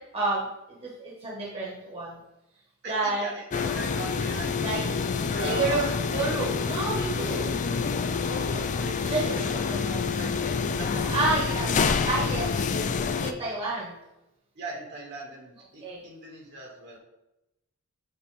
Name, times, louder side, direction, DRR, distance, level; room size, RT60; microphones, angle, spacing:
voice 1, 0.1-2.2 2.8-3.3 4.6-5.1 5.4-5.8 6.1-7.5 9.1-9.3 9.7-9.8 11.0-11.7 12.1-12.8 13.2-13.9 15.8-16.0, right 2 dB, 30° right, -5 dB, 1.6 m, -29 dB
voice 2, 2.8-6.4 8.3-10.3 10.7-11.0 12.5-12.7 14.6-17.0, right 2 dB, 50° right, -1 dB, 1.9 m, -41 dB
sound 1, 3.5-13.3, left 5 dB, 35° left, 0.4 m, -27 dB
8.4 x 4.6 x 3.5 m, 0.91 s
head